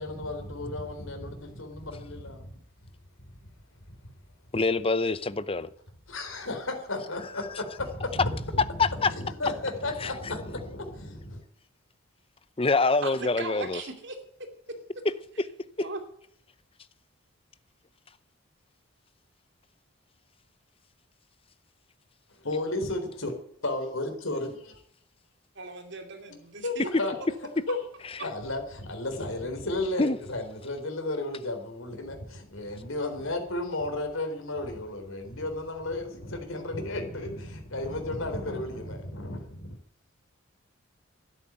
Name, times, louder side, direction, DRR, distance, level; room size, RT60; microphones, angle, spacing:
voice 1, 0.0-2.5 3.9-4.0 6.1-11.4 22.3-23.3 23.6-24.8 26.6-27.2 27.7-27.8 28.2-39.8, left 2 dB, 75° left, 4.0 m, -33 dB
voice 2, 4.5-5.7 8.8-9.1 10.0-10.4 12.6-13.8 15.4-15.5 15.8-15.9 30.0-30.2, left 3 dB, 25° left, 0.7 m, -25 dB
voice 3, 13.4-14.2 15.8-16.0 25.6-26.9, right 3 dB, 55° right, 2.7 m, -38 dB
12.5 x 10.5 x 9.0 m
head